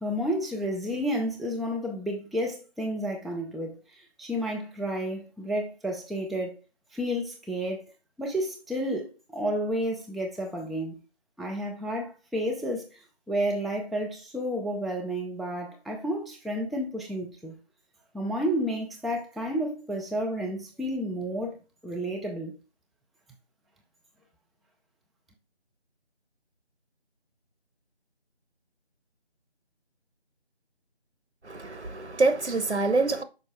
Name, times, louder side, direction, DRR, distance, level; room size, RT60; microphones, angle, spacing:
voice 1, 0.0-6.6 6.9-7.9 8.2-11.0 11.4-13.0 13.3-17.6 18.1-21.6 21.8-22.5, equal, ahead, 0.4 m, -31 dB
voice 2, 31.4-33.2, right 3 dB, 85° right, 1.2 m, -25 dB
6.2 x 5.0 x 3.5 m
figure-of-eight pair, 165°, 33 cm